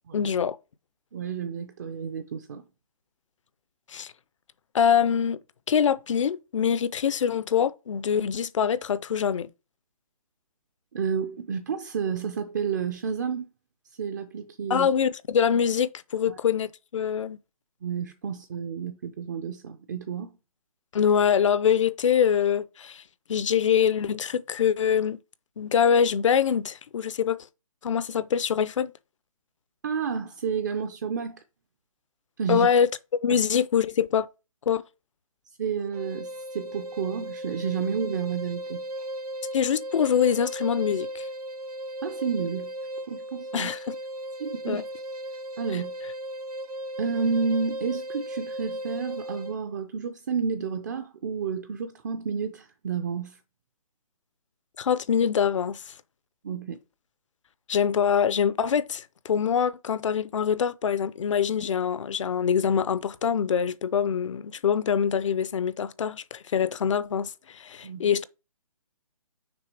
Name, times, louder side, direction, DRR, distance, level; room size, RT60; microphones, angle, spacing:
voice 1, 0.1-0.6 3.9-4.1 4.7-5.4 5.7-9.5 14.7-17.4 20.9-23.0 23.3-25.2 25.6-27.4 27.8-28.9 32.5-32.9 33.2-34.3 34.7-34.8 39.5-41.3 43.5-43.9 44.7-44.8 45.7-45.8 54.8-55.9 57.7-68.2, left 8 dB, 55° left, 0.5 m, -24 dB
voice 2, 1.1-2.6 10.9-13.4 14.0-14.9 16.3-16.4 17.8-20.3 29.8-31.4 32.4-32.7 33.3-33.4 35.6-38.8 42.0-42.7 43.1-43.7 44.4-44.8 45.6-45.9 47.0-53.4 56.4-56.8 67.8-68.1, right 6 dB, 30° right, 0.4 m, -30 dB
sound 1, 35.9-49.6, right 1 dB, 80° right, 1.0 m, -36 dB
6.1 x 3.5 x 4.6 m
hypercardioid pair, 155°, 19 cm